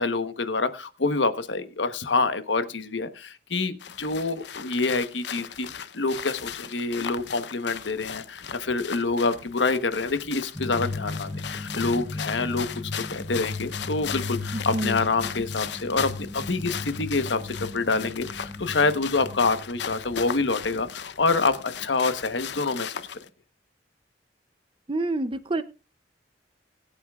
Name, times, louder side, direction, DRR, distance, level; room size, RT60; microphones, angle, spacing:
voice 1, 0.0-12.7 13.1-23.0, left 3 dB, 90° left, 1.1 m, -27 dB
sound 1, 3.8-23.3, left 8 dB, 70° left, 0.7 m, -37 dB
sound 2, 10.5-20.7, left 2 dB, 25° left, 4.0 m, -36 dB
voice 2, 14.5-15.0 24.9-25.6, right 2 dB, 30° right, 0.6 m, -28 dB
22.0 x 8.8 x 2.4 m
head